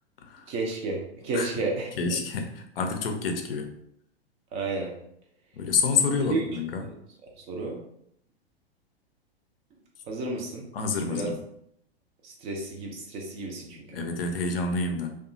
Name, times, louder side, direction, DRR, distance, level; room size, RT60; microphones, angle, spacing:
voice 1, 0.5-2.1 4.5-4.9 6.2-6.5 6.8-6.9 7.4-7.8 10.1-10.6 11.1-11.3 12.2-14.0, right 3 dB, 20° right, 0 dB, 0.4 m, -32 dB
voice 2, 2.0-3.7 5.5-6.8 10.7-11.4 13.9-15.1, left 4 dB, 60° left, 5 dB, 0.5 m, -28 dB
2.6 x 2.3 x 2.5 m, 0.73 s
figure-of-eight pair, 100°, 32 cm